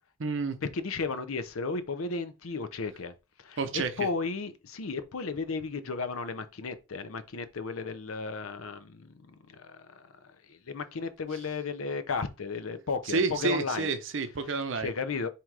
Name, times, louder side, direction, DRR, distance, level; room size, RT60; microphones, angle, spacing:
voice 1, 0.2-0.6 3.6-3.9 13.1-14.9, right 4 dB, 65° right, 0.7 m, -29 dB
voice 2, 0.7-3.1 3.4-9.3 9.5-10.0 10.5-13.9 14.8-15.3, left 4 dB, 85° left, 0.6 m, -34 dB
3.6 x 2.9 x 4.6 m
head